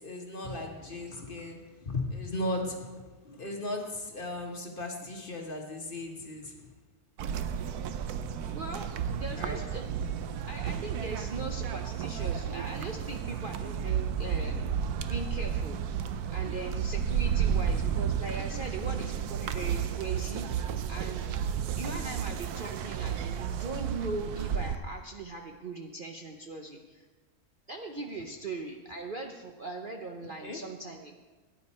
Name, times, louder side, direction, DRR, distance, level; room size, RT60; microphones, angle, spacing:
voice 1, 0.0-6.7 9.3-9.6 30.4-30.6, left 1 dB, 35° left, 2 dB, 1.6 m, -36 dB
sound 1, 7.2-24.8, right 8 dB, 80° right, 1.2 m, -32 dB
voice 2, 8.4-9.9 10.5-14.8 15.1-15.8 16.3-21.3 21.7-27.1 27.7-31.1, right 3 dB, 45° right, 2 dB, 0.8 m, -40 dB
17.0 x 10.0 x 4.3 m, 1.3 s
omnidirectional pair, 1.6 m